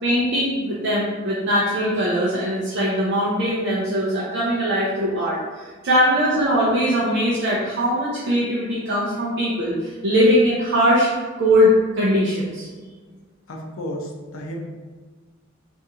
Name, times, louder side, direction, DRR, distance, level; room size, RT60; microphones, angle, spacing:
voice 1, 0.0-11.1 11.4-12.7, equal, 60° right, -7 dB, 0.6 m, -21 dB
voice 2, 13.5-14.6, equal, 80° left, 0 dB, 0.6 m, -32 dB
2.9 x 2.5 x 3.5 m, 1.4 s
head